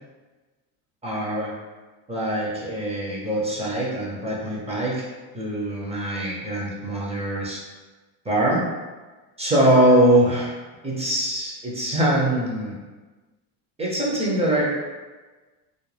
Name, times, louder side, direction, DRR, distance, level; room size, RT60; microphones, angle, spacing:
voice 1, 1.0-1.5 2.1-5.1 5.3-7.6 8.2-8.7 9.4-10.5 10.8-12.8 13.8-14.7, right 1 dB, 15° right, -4 dB, 0.6 m, -22 dB
2.4 x 2.1 x 3.2 m, 1.3 s
supercardioid pair, 105°, 48 cm